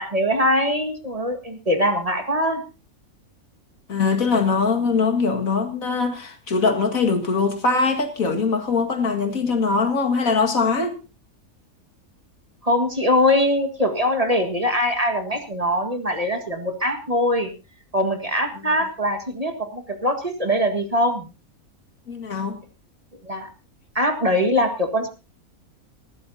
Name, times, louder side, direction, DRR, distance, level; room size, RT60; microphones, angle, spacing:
voice 1, 0.0-2.6 12.6-17.5 17.9-21.3 23.2-23.5 24.0-25.1, left 1 dB, 25° right, 1.8 m, -22 dB
voice 2, 3.9-10.9 22.1-22.6, left 4 dB, 70° left, 2.4 m, -22 dB
19.5 x 15.0 x 2.8 m
omnidirectional pair, 1.5 m